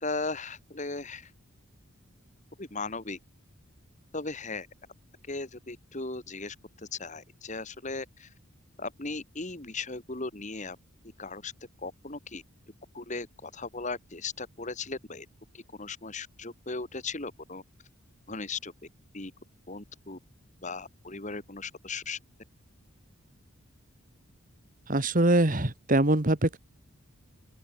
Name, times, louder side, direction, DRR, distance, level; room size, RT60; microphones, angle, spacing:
voice 1, 0.0-1.3 2.6-3.2 4.1-4.7 5.3-6.6 6.9-8.3 8.8-10.8 11.2-11.5 11.8-12.4 12.9-15.3 15.5-17.6 18.3-18.7 19.1-19.3 19.7-20.2 20.6-22.2, left 3 dB, 35° left, 2.0 m, -37 dB
voice 2, 24.9-26.6, right 1 dB, 40° right, 1.7 m, -23 dB
open air
head